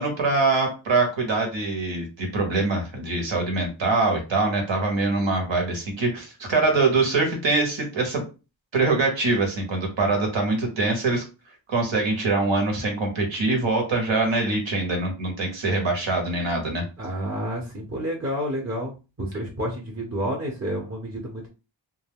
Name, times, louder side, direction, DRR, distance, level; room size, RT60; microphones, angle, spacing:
voice 1, 0.0-8.2 8.7-11.2 11.7-16.8, right 3 dB, 70° right, 2 dB, 1.2 m, -23 dB
voice 2, 17.0-18.9 19.2-21.5, equal, 30° right, -1 dB, 0.9 m, -29 dB
2.3 x 2.1 x 3.5 m, 0.30 s
cardioid pair, 70°, 46 cm